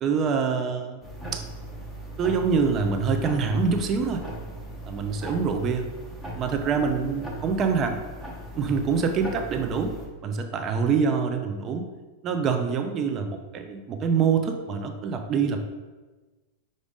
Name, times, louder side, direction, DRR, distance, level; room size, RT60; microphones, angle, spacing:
voice 1, 0.0-1.0 1.3-1.4 2.2-4.2 4.8-5.9 6.4-8.0 8.6-9.9 10.2-11.9 12.2-15.7, right 5 dB, 35° right, 6 dB, 0.5 m, -25 dB
sound 1, 1.0-10.1, right 1 dB, 5° right, 1.0 m, -38 dB
4.9 x 2.6 x 3.5 m, 1.2 s
hypercardioid pair, 115°, 0 cm